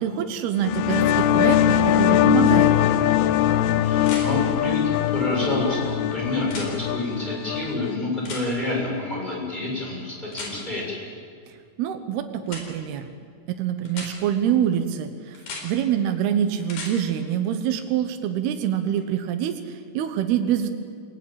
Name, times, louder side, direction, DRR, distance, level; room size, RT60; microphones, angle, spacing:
voice 1, 0.0-3.2 11.8-13.1 13.6-15.4 15.6-20.7, right 9 dB, 70° right, 7 dB, 3.0 m, -25 dB
sound 1, 0.6-8.0, left 11 dB, 75° left, 2.6 m, -21 dB
sound 2, 2.5-2.6 4.0-4.3 6.4-6.7 8.2-8.5 10.3-10.5 12.5-12.6 13.9-14.1 15.3-15.6 16.6-16.9 19.0-19.1, left 4 dB, 60° left, 5.7 m, -35 dB
voice 2, 3.8-11.0, left 2 dB, 10° left, -3 dB, 6.8 m, -28 dB
28.5 x 18.5 x 8.8 m, 2.4 s
omnidirectional pair, 5.0 m